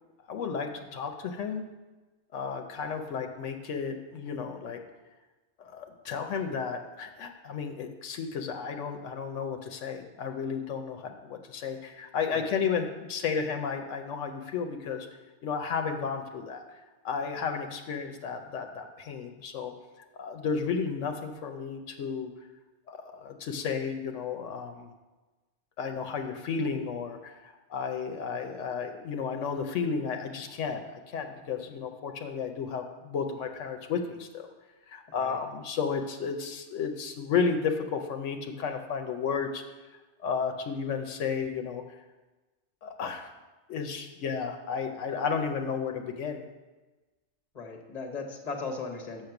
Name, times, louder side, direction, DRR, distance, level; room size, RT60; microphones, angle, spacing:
voice 1, 0.3-1.6 2.3-4.8 5.6-15.1 15.4-16.6 17.0-19.7 20.2-22.3 22.9-24.9 25.8-34.5 34.9-39.6 40.2-41.8 42.8-43.3 43.7-46.5, left 6 dB, 80° left, 5 dB, 1.0 m, -33 dB
voice 2, 35.1-35.4 47.5-49.3, left 4 dB, 35° left, 4 dB, 1.0 m, -38 dB
6.6 x 6.1 x 5.8 m, 1.2 s
omnidirectional pair, 1.2 m